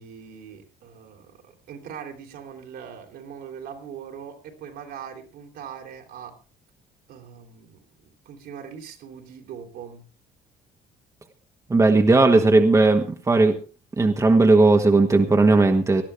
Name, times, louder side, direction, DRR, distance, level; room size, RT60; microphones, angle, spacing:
voice 1, 0.0-6.3 7.1-10.0, right 7 dB, 75° right, 2 dB, 3.7 m, -41 dB
voice 2, 11.7-13.6 14.0-16.0, right 3 dB, 20° right, 4 dB, 1.4 m, -17 dB
19.0 x 12.5 x 3.5 m, 0.35 s
cardioid pair, 110°, 17 cm